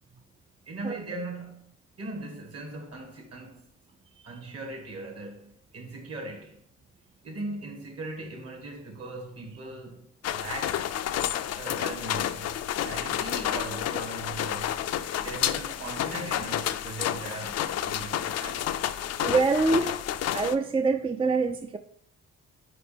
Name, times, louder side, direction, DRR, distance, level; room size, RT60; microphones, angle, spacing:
voice 1, 0.7-1.7 2.0-3.6 4.2-6.6 7.2-10.9 11.6-14.8 15.2-18.7, right 2 dB, 55° right, 1.9 m, -39 dB
sound 1, 10.2-20.5, left 11 dB, 55° left, 0.4 m, -30 dB
voice 2, 19.2-20.0 20.3-21.8, right 4 dB, 20° right, 0.3 m, -25 dB
5.0 x 4.4 x 5.0 m
cardioid pair, 90°, 30 cm